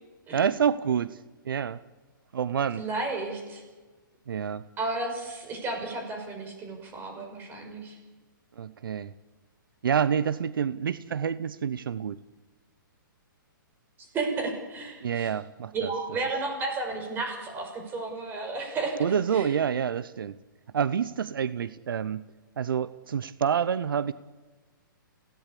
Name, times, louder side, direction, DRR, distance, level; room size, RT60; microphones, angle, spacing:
voice 1, 0.3-1.2 1.5-1.8 2.3-2.9 4.3-4.6 8.6-9.1 9.8-12.2 15.0-15.9 19.0-20.4 20.7-22.2 22.6-24.1, right 7 dB, 75° right, 16 dB, 0.8 m, -27 dB
voice 2, 2.8-3.6 4.8-8.0 14.1-15.3 15.7-19.0 19.3-19.6, right 3 dB, 20° right, 3 dB, 5.9 m, -33 dB
26.0 x 17.5 x 8.4 m, 1.3 s
hypercardioid pair, 150°, 11 cm